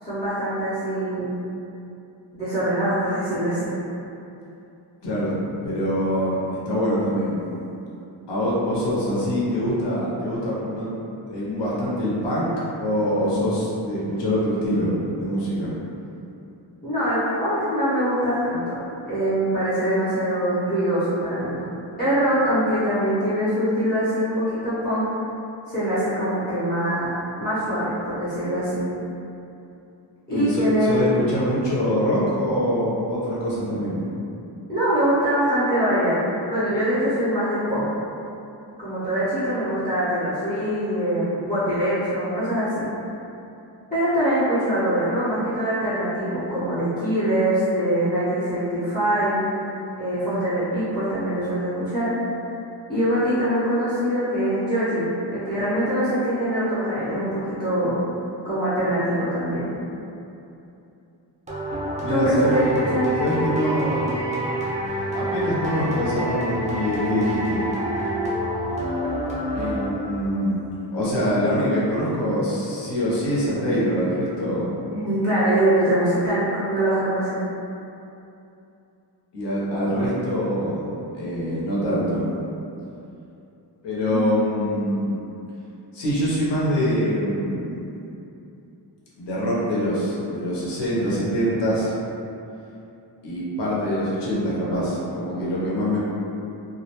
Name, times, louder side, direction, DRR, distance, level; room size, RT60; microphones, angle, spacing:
voice 1, 0.0-1.3 2.3-3.7 16.8-21.6 22.0-25.1 25.7-28.8 30.3-31.0 34.7-37.8 38.8-42.8 43.9-49.4 50.0-52.1 52.9-58.0 58.4-59.7 62.1-63.1 74.9-77.4 84.1-84.4, right 1 dB, 25° left, -15 dB, 0.6 m, -23 dB
voice 2, 5.6-7.4 8.3-10.9 11.3-12.5 12.8-15.7 30.3-34.0 62.0-64.1 65.1-67.7 69.5-70.5 70.9-74.7 79.3-80.9 81.1-82.2 83.8-85.1 85.9-87.9 89.2-91.9 93.2-96.0, equal, 75° left, -8 dB, 0.7 m, -24 dB
sound 1, 61.5-70.4, right 1 dB, 15° right, 0.4 m, -27 dB
2.4 x 2.0 x 2.8 m, 2.8 s
wide cardioid pair, 165°, 43 cm